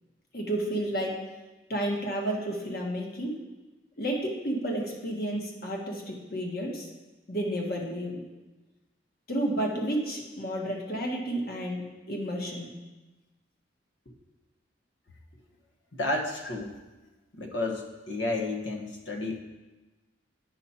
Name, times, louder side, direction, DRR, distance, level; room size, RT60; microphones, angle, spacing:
voice 1, 0.3-1.1 1.7-3.3 4.0-6.9 7.3-8.2 9.3-12.7, right 1 dB, 50° left, -1 dB, 1.4 m, -31 dB
voice 2, 15.9-16.7 17.3-19.4, left 2 dB, 75° left, 1 dB, 1.2 m, -31 dB
9.2 x 5.6 x 4.3 m, 1.1 s
head